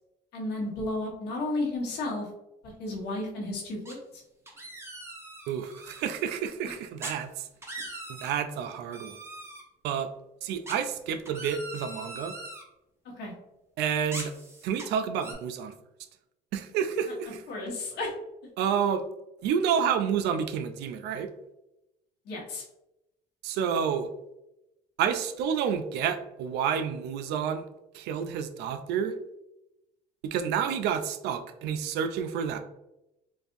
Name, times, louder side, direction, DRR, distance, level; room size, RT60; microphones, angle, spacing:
voice 1, 0.3-2.3 2.6-4.2 13.1-13.3 17.5-18.1 22.2-22.6, left 2 dB, 75° left, -2 dB, 1.2 m, -33 dB
sound 1, 3.9-4.1 4.5-6.0 7.0-7.1 7.5-8.4 8.9-9.6 10.7-12.6 14.1-14.9 15.2-15.3, right 2 dB, 15° right, 0.9 m, -41 dB
voice 2, 5.5-7.5 8.1-9.2 9.8-10.1 10.4-12.4 13.8-14.3 14.6-15.7 16.5-17.4 18.6-19.0 19.4-21.3 23.4-24.1 25.0-27.6 27.9-29.2 30.2-32.6, right 7 dB, 85° right, 9 dB, 0.4 m, -29 dB
4.0 x 2.5 x 2.5 m, 0.89 s
cardioid pair, 110°, 17 cm